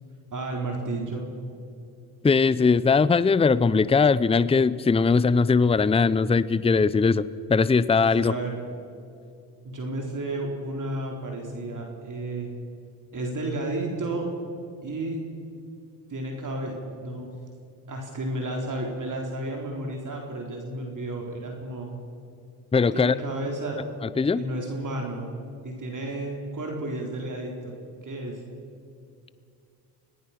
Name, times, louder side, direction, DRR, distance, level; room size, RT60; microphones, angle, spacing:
voice 1, 0.3-1.3 8.2-8.6 9.6-12.5 13.1-14.3 14.8-15.3 16.1-16.7 17.0-17.3 17.9-21.9 22.9-23.8 24.3-25.3 25.6-27.8 28.0-28.4, right 2 dB, 40° right, 0 dB, 4.1 m, -32 dB
voice 2, 2.2-7.2 7.5-8.3 22.7-23.1 24.2-24.4, left 4 dB, 15° left, 17 dB, 0.6 m, -20 dB
26.0 x 18.5 x 5.9 m, 2.5 s
hypercardioid pair, 60°, 45 cm